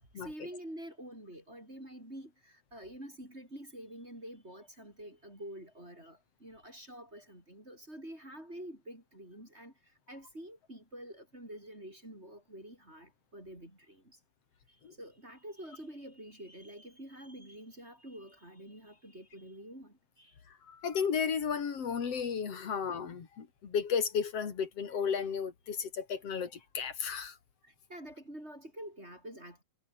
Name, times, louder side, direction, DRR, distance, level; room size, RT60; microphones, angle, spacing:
voice 1, 0.0-9.7 10.1-14.2 15.0-20.3 27.6-29.6, right 1 dB, 20° right, 8.0 m, -48 dB
voice 2, 20.7-27.3, left 6 dB, 55° left, 3.7 m, -33 dB
omnidirectional pair, 3.3 m